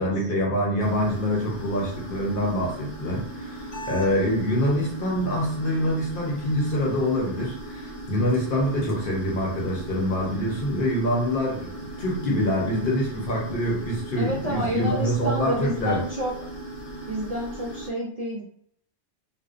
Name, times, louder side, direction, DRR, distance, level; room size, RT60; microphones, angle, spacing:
voice 1, 0.0-16.0, equal, 55° left, -2 dB, 0.9 m, -25 dB
sound 1, 0.8-17.9, right 1 dB, 85° left, 1.2 m, -38 dB
voice 2, 14.2-16.3 17.1-18.4, equal, 55° right, -5 dB, 0.4 m, -29 dB
2.5 x 2.1 x 2.4 m, 0.64 s
omnidirectional pair, 1.2 m